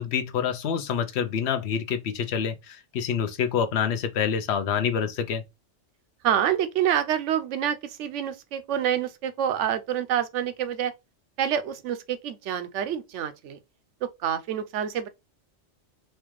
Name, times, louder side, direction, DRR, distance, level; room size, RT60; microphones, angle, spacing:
voice 1, 0.0-5.4, left 7 dB, 70° left, 0.8 m, -27 dB
voice 2, 6.2-10.9 11.4-13.6 14.0-15.1, right 9 dB, 80° right, 0.9 m, -27 dB
4.3 x 2.4 x 3.1 m
omnidirectional pair, 1.2 m